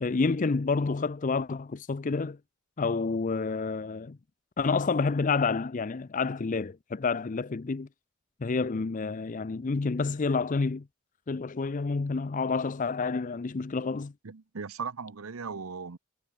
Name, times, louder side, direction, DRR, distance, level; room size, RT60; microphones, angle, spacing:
voice 1, 0.0-2.4 2.8-4.2 4.6-7.9 8.4-10.8 11.3-14.1, left 4 dB, 35° left, 0.5 m, -29 dB
voice 2, 14.2-16.0, right 5 dB, 75° right, 0.8 m, -38 dB
head